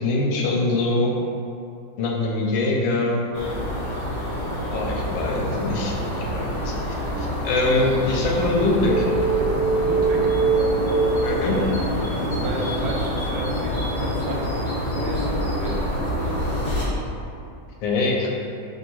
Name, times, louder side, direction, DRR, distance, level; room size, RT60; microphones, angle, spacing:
voice 1, 0.0-1.1 2.0-3.2 4.7-9.1 11.2-11.5 17.8-18.3, left 2 dB, 75° left, -1 dB, 1.2 m, -23 dB
sound 1, 3.3-16.8, equal, 55° left, 0.9 m, -27 dB
sound 2, 8.8-12.0, right 4 dB, 5° left, 1.0 m, -23 dB
voice 2, 9.8-10.3 11.5-11.8 12.1-16.5, right 2 dB, 90° right, -1 dB, 1.4 m, -32 dB
3.1 x 2.7 x 4.4 m, 2.5 s
omnidirectional pair, 2.2 m